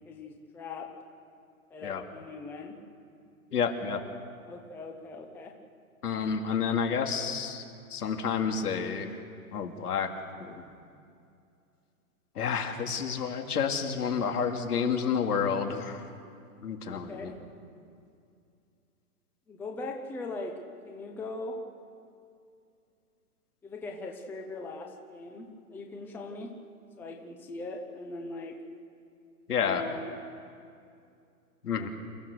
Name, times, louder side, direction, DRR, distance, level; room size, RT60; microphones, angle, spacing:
voice 1, 0.0-0.9 1.7-2.8 4.4-5.5 16.9-17.3 19.5-20.6 20.9-21.6 23.6-26.5 27.0-28.6 29.6-30.1 31.8-31.9, left 2 dB, 5° left, 3 dB, 0.7 m, -40 dB
voice 2, 3.5-4.0 6.0-7.6 7.9-9.2 9.5-10.1 10.4-10.6 12.4-16.0 16.6-17.3 29.5-29.8 31.6-31.9, left 6 dB, 80° left, 4 dB, 2.7 m, -30 dB
28.5 x 14.5 x 6.8 m, 2.4 s
hypercardioid pair, 150°, 45 cm